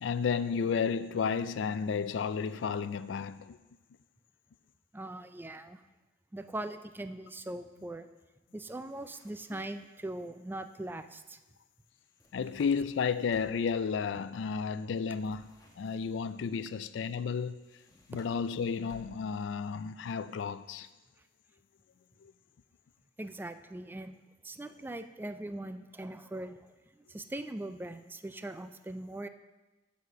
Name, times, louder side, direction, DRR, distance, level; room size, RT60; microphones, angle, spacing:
voice 1, 0.0-3.6 9.5-9.6 12.3-15.5 15.8-17.6 18.1-20.9 22.2-22.3, left 6 dB, 75° left, 0.4 m, -32 dB
voice 2, 4.9-5.8 6.3-8.1 8.5-11.4 23.2-24.2 24.4-29.3, right 1 dB, 10° right, 0.3 m, -41 dB
sound 1, 8.7-10.0 11.9-13.8 15.2-16.4 17.6-19.5, left 1 dB, 20° left, 1.0 m, -60 dB
9.4 x 4.2 x 6.6 m
head